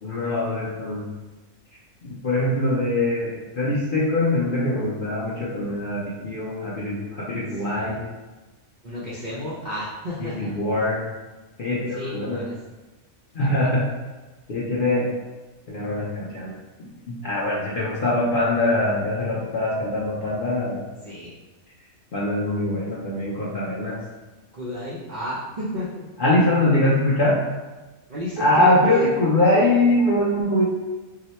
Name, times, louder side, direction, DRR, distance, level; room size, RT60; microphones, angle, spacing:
voice 1, 0.0-1.1 2.0-8.0 10.2-11.0 11.6-12.5 13.3-13.9 14.5-15.1 15.7-16.5 16.8-20.8 22.1-24.0 26.2-27.4 28.4-30.6, left 1 dB, 55° left, -7 dB, 0.6 m, -23 dB
voice 2, 8.8-10.5 11.9-12.5 21.0-21.3 24.5-26.0 28.1-29.1, equal, 60° right, -8 dB, 0.4 m, -32 dB
2.8 x 2.1 x 4.1 m, 1.2 s
omnidirectional pair, 1.5 m